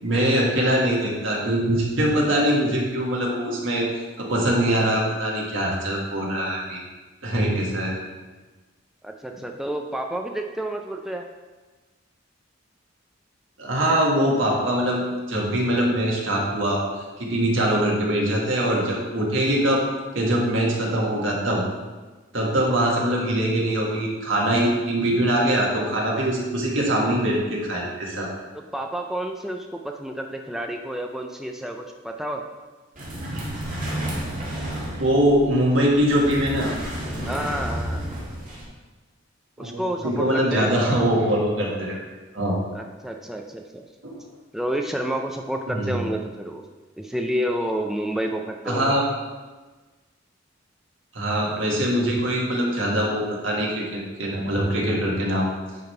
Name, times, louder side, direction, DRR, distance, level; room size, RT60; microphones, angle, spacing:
voice 1, 0.0-6.8 7.2-7.9 13.6-16.8 17.2-19.9 20.1-21.6 22.3-28.3 35.0-36.7 39.6-42.0 42.3-42.6 44.0-44.2 45.7-46.1 48.6-49.0 51.1-55.5, right 1 dB, 70° right, -2 dB, 1.6 m, -23 dB
voice 2, 9.0-11.3 28.5-32.4 37.3-38.0 39.6-40.8 42.7-43.8 44.5-46.6 47.0-49.0 51.5-51.8, right 1 dB, ahead, 2 dB, 0.3 m, -30 dB
sound 1, 33.0-38.6, right 1 dB, 40° right, 2.0 m, -31 dB
9.4 x 3.5 x 4.4 m, 1.3 s
head